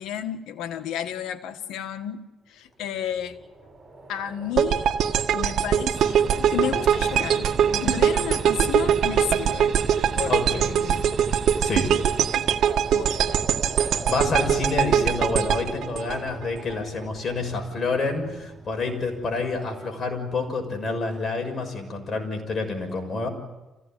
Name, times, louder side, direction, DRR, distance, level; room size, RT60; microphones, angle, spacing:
voice 1, 0.0-3.4 4.1-4.9 5.3-9.8 10.1-11.2 12.9-13.5, left 9 dB, 90° left, 7 dB, 1.6 m, -32 dB
sound 1, 2.8-19.7, right 2 dB, 25° right, 7.2 m, -42 dB
sound 2, 4.6-16.7, right 8 dB, 75° right, 1.8 m, -22 dB
sound 3, 5.9-12.4, right 5 dB, 55° right, 3.7 m, -38 dB
voice 2, 9.9-10.7 11.6-11.9 13.8-23.3, left 3 dB, 40° left, 4 dB, 6.7 m, -28 dB
27.5 x 16.5 x 9.2 m, 1.1 s
cardioid pair, 90°, 0 cm